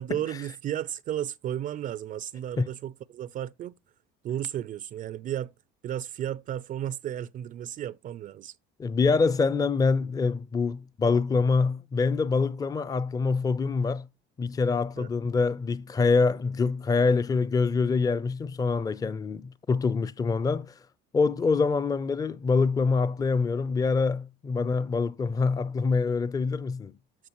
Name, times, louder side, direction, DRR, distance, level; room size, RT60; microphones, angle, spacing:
voice 1, 0.0-3.7 4.2-5.5 5.8-8.6 15.0-15.1, right 11 dB, 45° right, 0.4 m, -33 dB
voice 2, 8.8-14.1 14.4-20.7 21.1-26.9, left 4 dB, 20° left, 0.5 m, -25 dB
13.0 x 4.9 x 2.9 m
supercardioid pair, 105°, 20 cm